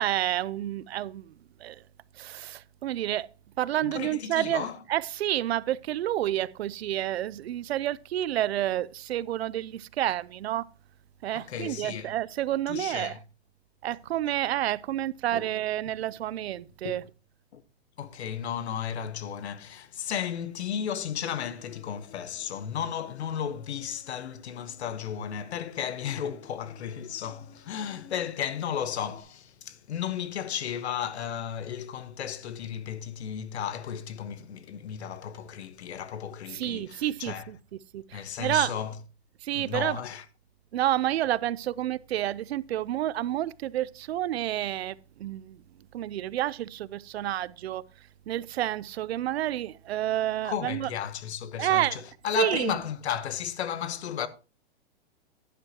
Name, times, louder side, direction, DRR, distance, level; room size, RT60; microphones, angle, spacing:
voice 1, 0.0-1.3 1.6-1.8 2.1-3.3 3.6-10.7 11.2-13.2 13.8-17.0 36.5-37.6 37.9-38.7 39.4-40.0 40.7-45.6 45.9-47.8 48.3-50.9 51.6-52.0 52.4-52.7, right 13 dB, 70° right, 0.6 m, -29 dB
voice 2, 3.8-4.8 11.3-12.1 12.7-13.2 15.3-15.5 16.8-17.0 17.5-17.6 18.0-37.5 38.1-38.9 39.5-40.2 50.4-54.3, left 8 dB, 85° left, 1.2 m, -34 dB
Human voice, 21.2-29.2, left 8 dB, 20° left, 0.8 m, -54 dB
11.0 x 10.0 x 2.9 m
supercardioid pair, 175°, 32 cm